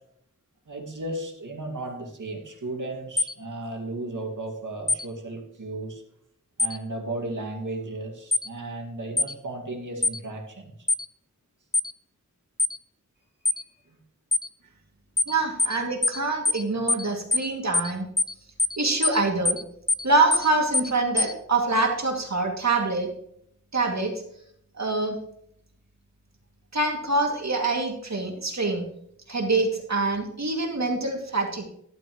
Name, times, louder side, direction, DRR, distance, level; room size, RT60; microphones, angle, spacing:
voice 1, 0.7-6.0 6.6-10.8 13.4-14.0 14.6-14.7 15.3-15.4, right 2 dB, 85° right, 2 dB, 2.2 m, -35 dB
sound 1, 3.2-3.3 4.9-5.0 6.6-6.8 8.3-8.5 9.2-9.3 10.0-10.2 10.9-11.0 11.7-11.9 12.6-12.8 13.4-13.6 14.3-14.5 15.2-15.3 15.6-15.8 16.0-16.2 16.4-16.6 16.9-17.0 17.3-17.5 17.7-17.9 18.2-18.3 18.6-18.8 19.0-19.2 19.4-19.6 19.9-20.0 20.3-20.5 20.7-20.9 21.2-21.3, left 3 dB, 15° left, 0.3 m, -23 dB
voice 2, 15.3-18.1 18.8-19.6 20.0-23.1 23.7-24.1 24.8-25.2 26.7-28.8 29.3-31.6, right 3 dB, 65° right, 1 dB, 2.4 m, -25 dB
12.0 x 11.5 x 3.1 m, 0.71 s
wide cardioid pair, 75°, 30 cm